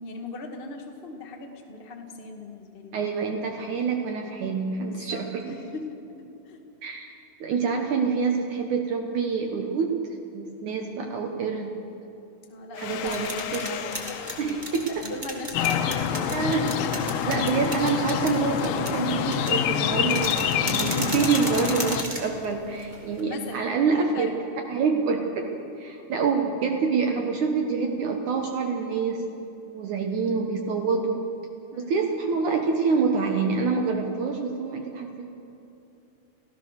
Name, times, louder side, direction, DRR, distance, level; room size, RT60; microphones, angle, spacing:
voice 1, 0.0-3.0 4.9-6.0 6.4-6.6 12.5-16.5 16.8-17.1 23.2-24.3 31.7-32.1, left 3 dB, 30° left, 2 dB, 0.9 m, -39 dB
voice 2, 2.9-5.4 6.8-7.1 7.4-10.0 10.3-11.8 12.8-13.6 14.4-14.9 16.3-16.7 17.3-24.3 24.7-29.3 29.7-31.1 31.8-35.3, right 5 dB, 65° right, 3 dB, 2.3 m, -26 dB
Domestic sounds home sounds, 12.7-17.2, left 9 dB, 75° left, 2.6 m, -38 dB
sound 1, 12.8-23.2, right 1 dB, 15° right, 1.9 m, -36 dB
sound 2, 15.5-22.0, left 9 dB, 90° left, 3.0 m, -26 dB
29.5 x 16.0 x 6.7 m, 2.7 s
omnidirectional pair, 4.4 m